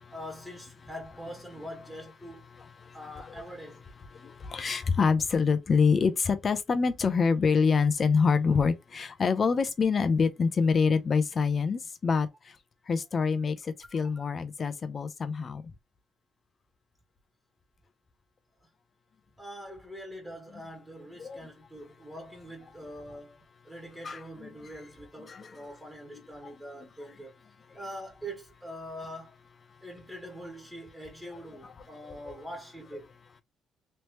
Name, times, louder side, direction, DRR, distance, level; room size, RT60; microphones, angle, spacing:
voice 1, 0.1-2.4 2.9-3.8 13.9-14.2 19.4-27.4 27.7-29.3 29.8-33.1, equal, 10° right, 1.4 m, -43 dB
voice 2, 2.6-3.0 4.1-12.3 12.9-15.6 21.2-21.4 24.0-24.5 25.3-25.5 32.3-32.4, left 5 dB, 45° left, 0.7 m, -26 dB
3.2 x 2.9 x 3.0 m
cardioid pair, 90°, 0 cm